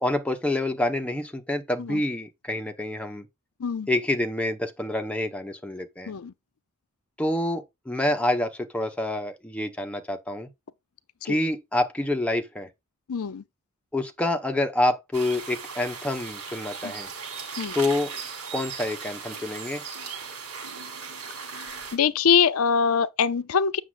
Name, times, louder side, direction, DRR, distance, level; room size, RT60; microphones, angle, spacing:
voice 1, 0.0-3.3 3.9-6.1 7.2-10.5 11.2-12.7 13.9-17.1 17.7-18.1 18.5-19.8, left 1 dB, 5° left, 1.0 m, -27 dB
voice 2, 13.1-13.4 16.8-16.9 17.6-17.7 21.9-23.8, left 6 dB, 75° left, 0.5 m, -23 dB
sound 1, 15.1-22.0, right 5 dB, 85° right, 4.1 m, -37 dB
8.1 x 6.2 x 2.5 m
head